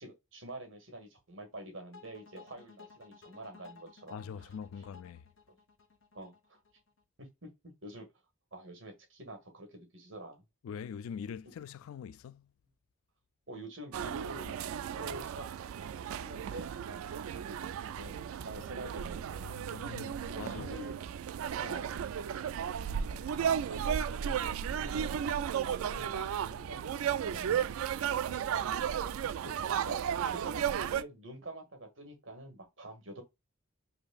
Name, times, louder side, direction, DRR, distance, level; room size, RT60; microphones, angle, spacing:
voice 1, 0.0-4.5 5.5-5.6 6.1-6.6 7.2-7.5 7.8-8.1 8.5-10.4 13.5-19.5 20.3-21.0 21.6-21.9 22.2-22.3 23.3-25.2 25.6-27.6 28.5-33.2, right 1 dB, 65° right, 1.6 m, -47 dB
sound 1, 1.9-7.0, left 5 dB, 65° left, 0.8 m, -56 dB
voice 2, 4.1-5.2 10.6-12.5 19.4-20.7, left 7 dB, 85° left, 0.3 m, -43 dB
sound 2, 13.9-31.0, right 8 dB, 85° right, 0.3 m, -34 dB
5.0 x 2.7 x 2.2 m
head